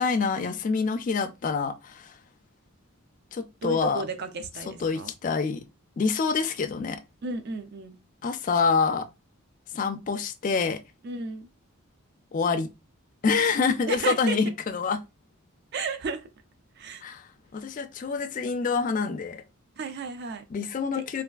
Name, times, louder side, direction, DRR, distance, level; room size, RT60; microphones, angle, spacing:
voice 1, 0.0-2.2 3.3-4.0 4.7-5.6 6.0-7.0 8.2-9.1 9.7-10.8 12.3-12.7 13.2-15.0 17.0-19.4 20.5-21.2, left 5 dB, 35° left, 0.3 m, -26 dB
voice 2, 3.6-5.1 7.2-8.0 11.0-11.5 13.9-14.4 15.7-16.3 16.7-17.1 19.8-20.4 21.0-21.1, right 4 dB, 50° right, 0.4 m, -33 dB
3.2 x 2.3 x 2.3 m
head